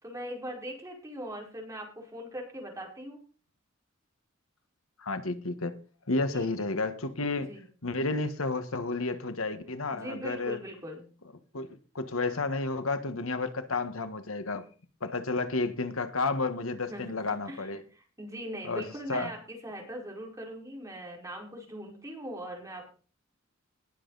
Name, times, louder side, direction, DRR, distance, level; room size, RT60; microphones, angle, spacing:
voice 1, 0.0-3.2 6.3-6.5 7.4-7.7 9.9-11.0 16.9-22.9, equal, 15° right, 4.8 m, -41 dB
voice 2, 5.0-5.8 6.1-7.6 7.8-10.6 11.5-11.7 11.9-14.7 15.0-17.8 18.6-19.3, left 3 dB, 85° left, 1.5 m, -31 dB
19.5 x 7.4 x 4.1 m
head